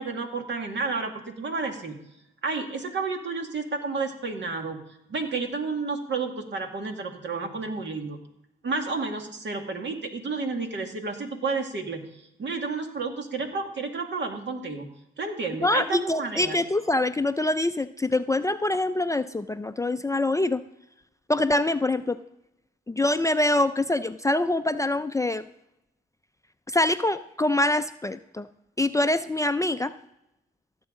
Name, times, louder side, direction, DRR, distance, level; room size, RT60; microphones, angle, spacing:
voice 1, 0.0-1.9 2.4-4.8 5.1-8.2 8.6-14.9 15.2-16.6, right 4 dB, 60° right, 4 dB, 2.0 m, -31 dB
voice 2, 15.6-20.6 21.3-22.2 22.9-25.4 26.7-28.5 28.8-29.9, left 2 dB, 15° left, 10 dB, 0.4 m, -24 dB
16.0 x 7.2 x 3.8 m, 0.84 s
supercardioid pair, 60°, 21 cm